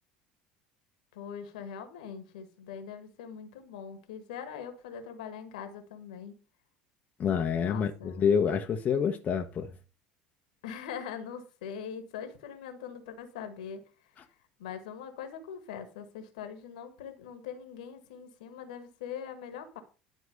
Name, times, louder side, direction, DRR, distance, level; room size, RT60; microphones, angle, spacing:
voice 1, 1.1-6.4 7.6-8.2 10.6-13.8 14.6-19.8, left 7 dB, 70° left, 1.6 m, -42 dB
voice 2, 7.2-9.7, left 7 dB, 40° left, 1.1 m, -27 dB
11.0 x 4.4 x 6.6 m
figure-of-eight pair, 65°, 4 cm